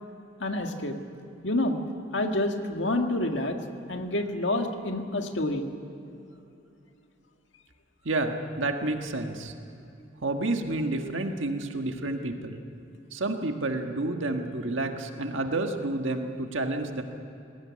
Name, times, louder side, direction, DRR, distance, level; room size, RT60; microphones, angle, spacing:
voice 1, 0.4-1.0 1.4-1.8 2.1-3.6 3.9-5.7, left 1 dB, 70° left, 4 dB, 1.8 m, -28 dB
voice 2, 8.0-9.5 10.2-12.6 13.1-17.0, right 2 dB, 90° right, 4 dB, 1.6 m, -30 dB
20.5 x 17.5 x 9.7 m, 2.8 s
head